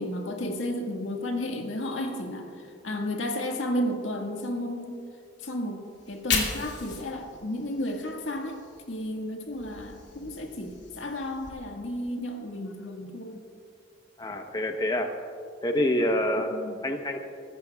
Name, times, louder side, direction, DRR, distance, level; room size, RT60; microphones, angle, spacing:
voice 1, 0.0-2.5 2.8-5.0 5.4-8.6 8.9-13.4 16.5-16.8, left 1 dB, 90° left, 2 dB, 1.7 m, -32 dB
Fire, 5.9-9.1 9.4-11.5, left 5 dB, 70° left, 2.4 m, -36 dB
voice 2, 14.2-15.1 15.6-16.5 16.8-17.2, left 1 dB, 20° left, 4 dB, 0.8 m, -26 dB
24.5 x 14.0 x 2.3 m, 2.4 s
head